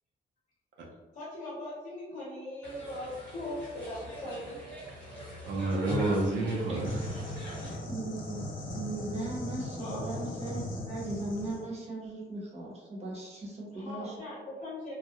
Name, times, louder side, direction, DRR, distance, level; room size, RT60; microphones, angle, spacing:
voice 1, 1.1-4.7 9.8-10.1 13.7-14.9, left 1 dB, 40° left, -8 dB, 0.7 m, -40 dB
sound 1, 2.6-7.8, equal, 5° left, 0.8 m, -41 dB
voice 2, 5.5-7.5, right 2 dB, 80° right, -2 dB, 0.5 m, -30 dB
voice 3, 6.7-7.1 7.9-8.4 8.7-14.2, right 2 dB, 35° right, -3 dB, 0.7 m, -38 dB
sound 2, 6.8-11.7, left 1 dB, 85° left, 0.6 m, -38 dB
2.3 x 2.0 x 2.7 m, 1.2 s
wide cardioid pair, 175°, 19 cm